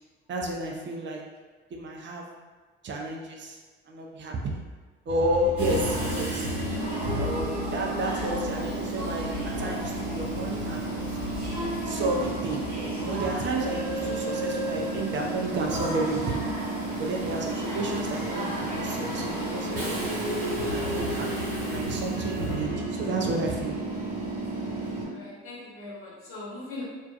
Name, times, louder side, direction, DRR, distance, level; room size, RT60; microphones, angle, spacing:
voice 1, 0.3-1.3 1.7-2.3 2.8-3.6 3.9-4.7 5.1-6.4 7.2-11.2 11.9-16.5 17.0-20.1 20.6-23.8, right 2 dB, 40° right, 0 dB, 0.5 m, -31 dB
sound 1, 5.1-14.2, left 4 dB, 15° left, 0.5 m, -39 dB
Train / Subway metro underground, 5.6-25.0, right 1 dB, 70° right, 1.2 m, -31 dB
voice 2, 25.1-26.8, left 3 dB, 45° left, -6 dB, 1.0 m, -39 dB
2.4 x 2.3 x 2.4 m, 1.4 s
hypercardioid pair, 55°, 31 cm